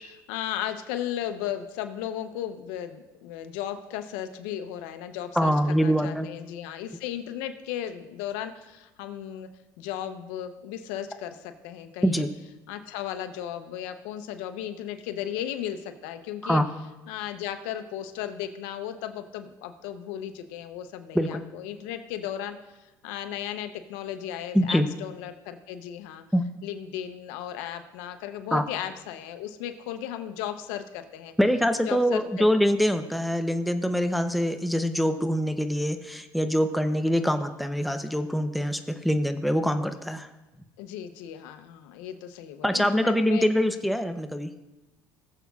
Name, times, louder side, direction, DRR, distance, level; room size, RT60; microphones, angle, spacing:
voice 1, 0.3-9.5 9.8-12.2 12.7-16.6 17.1-26.2 26.6-31.3 31.8-32.5 40.8-43.5, left 10 dB, 85° left, 8 dB, 0.8 m, -35 dB
voice 2, 5.4-6.3 12.0-12.3 16.4-16.7 21.1-21.4 24.5-24.9 26.3-26.4 28.5-28.6 31.4-40.3 42.6-44.5, equal, ahead, 7 dB, 0.7 m, -24 dB
19.5 x 7.4 x 2.4 m, 1.1 s
supercardioid pair, 95°, 8 cm